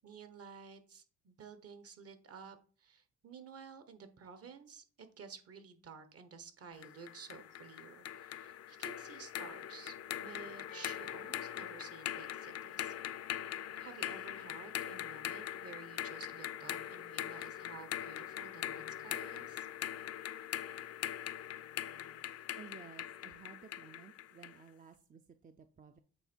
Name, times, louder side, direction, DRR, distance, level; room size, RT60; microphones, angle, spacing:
voice 1, 0.0-13.2 13.8-19.7, right 5 dB, 50° right, 10 dB, 1.2 m, -53 dB
sound 1, 6.8-24.6, left 11 dB, 55° left, 0.5 m, -42 dB
Percussion, 10.7-15.6, left 6 dB, 80° left, 0.8 m, -60 dB
voice 2, 22.6-26.0, right 6 dB, 25° right, 8 dB, 0.5 m, -55 dB
8.2 x 3.3 x 4.5 m, 0.41 s
cardioid pair, 90°, 30 cm